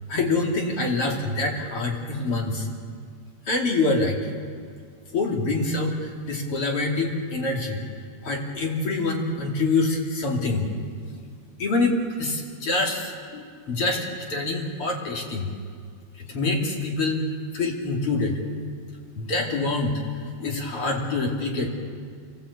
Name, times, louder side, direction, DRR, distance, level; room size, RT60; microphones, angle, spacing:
voice 1, 0.1-2.7 3.5-4.2 5.1-7.8 8.2-10.8 11.2-11.3 11.6-15.5 16.2-17.2 17.5-18.4 19.2-20.0 20.4-21.7, left 3 dB, 50° left, -1 dB, 3.7 m, -25 dB
29.0 x 16.5 x 8.3 m, 2.1 s
omnidirectional pair, 3.3 m